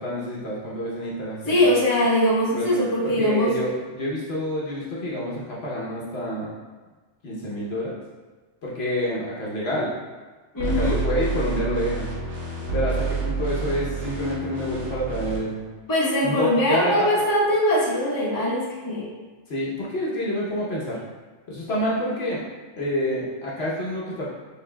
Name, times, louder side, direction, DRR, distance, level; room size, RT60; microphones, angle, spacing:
voice 1, 0.0-1.7 2.5-6.5 7.2-7.9 8.6-9.9 10.6-12.1 12.7-15.6 16.2-17.2 19.5-21.0 21.5-22.4 22.8-24.3, equal, 60° left, -6 dB, 1.1 m, -28 dB
voice 2, 1.5-3.5 10.5-11.0 15.9-19.1, left 1 dB, 20° left, -7 dB, 0.9 m, -21 dB
sound 1, 10.6-15.4, right 4 dB, 75° right, 1.7 m, -28 dB
6.5 x 3.2 x 2.2 m, 1.3 s
omnidirectional pair, 1.2 m